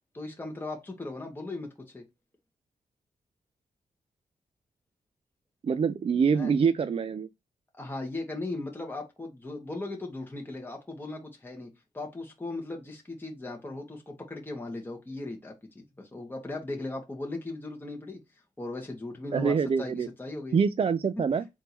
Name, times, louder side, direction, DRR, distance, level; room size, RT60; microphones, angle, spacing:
voice 1, 0.1-2.0 6.3-6.5 7.7-18.2 18.6-20.6, left 2 dB, 15° left, 1.1 m, -38 dB
voice 2, 5.6-7.3 19.3-20.1 20.5-21.5, right 6 dB, 40° right, 0.3 m, -25 dB
3.6 x 2.6 x 4.3 m
cardioid pair, 95°, 14 cm